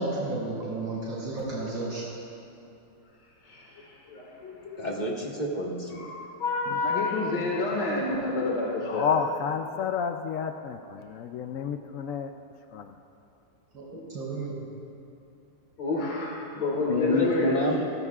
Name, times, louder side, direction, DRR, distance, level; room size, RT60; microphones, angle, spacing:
voice 1, 0.0-2.0 13.7-14.7, right 2 dB, 80° right, -8 dB, 4.3 m, -32 dB
voice 2, 3.4-4.9 5.9-6.1 6.4-9.1 15.8-17.6, left 3 dB, 65° left, -4 dB, 2.4 m, -29 dB
voice 3, 4.8-6.0 16.8-17.8, left 1 dB, 25° left, -2 dB, 1.5 m, -28 dB
voice 4, 8.9-12.3 12.7-12.9, left 6 dB, 90° left, 6 dB, 0.7 m, -30 dB
22.5 x 16.5 x 2.4 m, 2.9 s
omnidirectional pair, 2.0 m